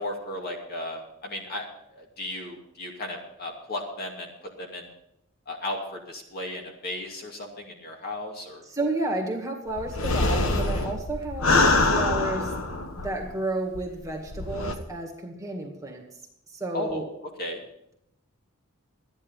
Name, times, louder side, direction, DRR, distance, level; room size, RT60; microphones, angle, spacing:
voice 1, 0.0-1.7 1.9-4.3 4.6-4.9 5.5-8.6 16.7-17.0 17.4-17.6, left 1 dB, 50° left, 0 dB, 2.6 m, -35 dB
voice 2, 8.6-12.5 13.0-16.0 16.5-17.1, right 2 dB, 15° right, 1 dB, 2.1 m, -31 dB
sound 1, 9.8-13.4 13.7-13.8 14.3-14.7, left 2 dB, 85° left, 1.3 m, -24 dB
13.0 x 10.5 x 5.6 m, 0.78 s
head